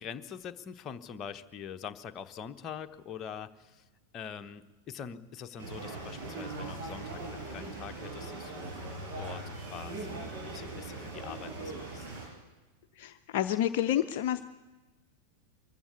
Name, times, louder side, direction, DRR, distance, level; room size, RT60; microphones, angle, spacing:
voice 1, 0.0-3.8 4.1-8.7 9.2-12.1, left 7 dB, 30° left, 8 dB, 1.1 m, -44 dB
sound 1, 5.6-12.3, right 2 dB, 50° right, 6.4 m, -40 dB
voice 2, 13.0-14.4, left 11 dB, 50° left, 9 dB, 0.7 m, -29 dB
24.0 x 14.5 x 8.4 m, 1.2 s
figure-of-eight pair, 90°, 0 cm